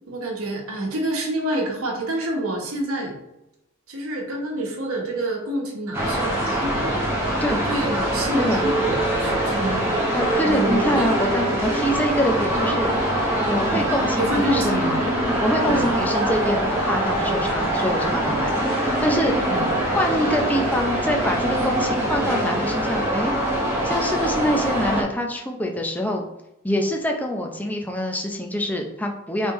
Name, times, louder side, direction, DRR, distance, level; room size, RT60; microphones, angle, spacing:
voice 1, 0.1-3.2 3.9-7.0 7.6-9.8 10.4-11.1 13.7-13.8 14.2-15.0 15.7-15.9 19.5-19.6, right 1 dB, 90° right, 0 dB, 1.3 m, -27 dB
sound 1, 5.9-25.0, right 1 dB, 10° right, 0.9 m, -23 dB
voice 2, 10.1-12.9 13.5-14.8 15.4-19.3 19.9-23.3 23.8-26.3 26.6-29.5, equal, 10° left, 2 dB, 0.5 m, -25 dB
5.1 x 3.4 x 3.1 m, 0.87 s
head